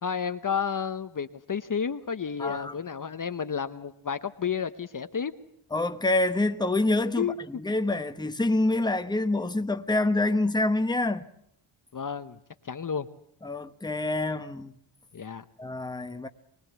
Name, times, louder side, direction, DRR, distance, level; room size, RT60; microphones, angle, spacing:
voice 1, 0.0-5.3 7.2-7.6 11.9-12.4 12.6-13.1 15.1-15.4, left 7 dB, 40° left, 0.9 m, -31 dB
voice 2, 2.4-2.7 5.7-11.2 13.4-14.7 15.6-16.3, left 2 dB, 10° left, 1.0 m, -26 dB
23.5 x 20.5 x 8.1 m
wide cardioid pair, 130°, 50 cm